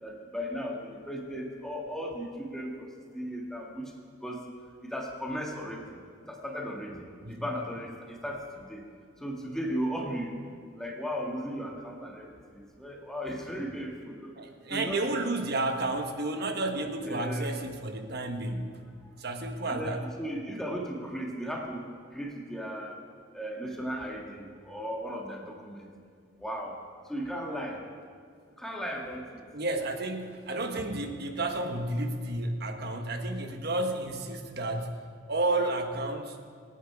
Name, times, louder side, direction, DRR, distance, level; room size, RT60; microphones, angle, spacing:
voice 1, 0.0-2.9 3.1-3.9 4.2-4.4 4.8-6.0 6.3-8.8 9.2-10.4 10.8-14.3 14.7-15.0 17.0-17.5 18.4-18.7 19.7-23.0 23.3-25.9 26.4-26.8 27.1-27.8 28.6-29.4, equal, 5° left, -1 dB, 1.7 m, -36 dB
voice 2, 14.4-18.8 19.2-20.0 29.5-35.0 35.3-36.4, right 2 dB, 55° right, 5 dB, 1.3 m, -31 dB
25.5 x 9.1 x 4.8 m, 2.1 s
head